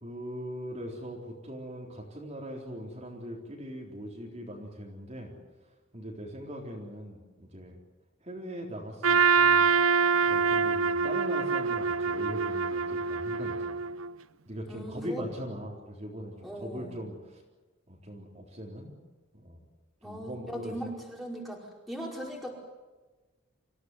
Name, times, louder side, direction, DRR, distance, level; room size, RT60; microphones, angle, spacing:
voice 1, 0.0-5.3 5.9-7.8 8.2-9.7 10.2-13.8 14.5-17.4 17.9-18.9 19.3-19.6 20.0-20.9, equal, 30° right, -1 dB, 3.9 m, -40 dB
Trumpet, 9.0-14.1, right 5 dB, 75° right, 0.8 m, -25 dB
voice 2, 14.7-15.2 16.4-17.0 20.0-22.5, equal, ahead, -2 dB, 5.1 m, -39 dB
27.0 x 16.5 x 9.8 m, 1.2 s
head